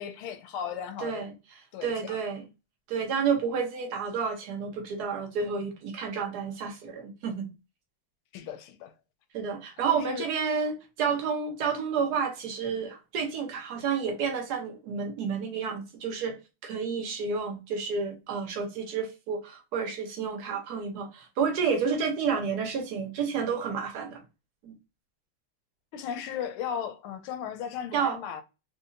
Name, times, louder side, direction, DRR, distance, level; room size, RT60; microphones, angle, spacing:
voice 1, 0.0-1.3 1.7-2.2 8.3-8.9 9.8-10.2 25.9-28.4, left 8 dB, 90° left, 1.5 m, -36 dB
voice 2, 1.0-1.3 1.8-2.4 2.9-7.5 9.3-16.4 16.6-24.2 24.6-24.7 27.9-28.2, right 6 dB, 60° right, 1.2 m, -30 dB
3.7 x 2.7 x 2.5 m
omnidirectional pair, 2.3 m